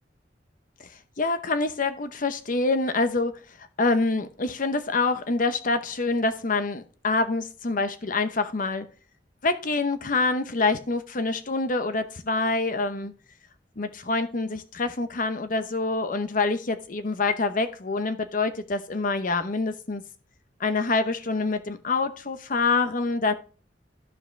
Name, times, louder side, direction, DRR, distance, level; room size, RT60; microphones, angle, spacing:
voice 1, 1.2-3.3 3.8-8.8 9.4-13.1 13.8-20.0 20.6-23.3, left 3 dB, 50° left, 10 dB, 0.8 m, -26 dB
13.5 x 4.9 x 3.2 m, 0.38 s
head